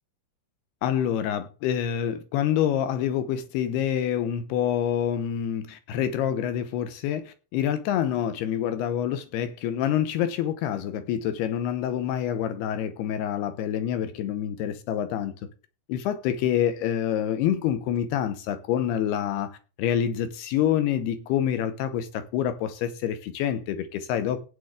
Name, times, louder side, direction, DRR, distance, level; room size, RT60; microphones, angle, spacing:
voice 1, 0.8-15.4 15.9-24.4, left 10 dB, 75° left, 2.7 m, -27 dB
16.0 x 9.1 x 3.7 m
omnidirectional pair, 5.3 m